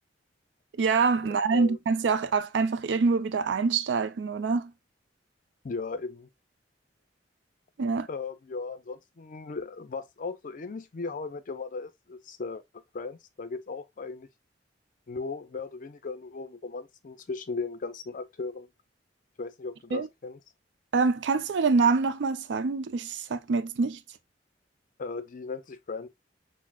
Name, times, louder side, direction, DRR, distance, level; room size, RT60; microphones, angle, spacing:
voice 1, 0.8-4.7 7.8-8.1 19.9-20.1 20.9-24.0, right 4 dB, 75° right, 0.4 m, -25 dB
voice 2, 5.6-6.3 8.1-14.3 15.1-18.7 19.4-20.4 25.0-26.1, left 4 dB, 45° left, 0.5 m, -37 dB
5.9 x 2.0 x 2.2 m
head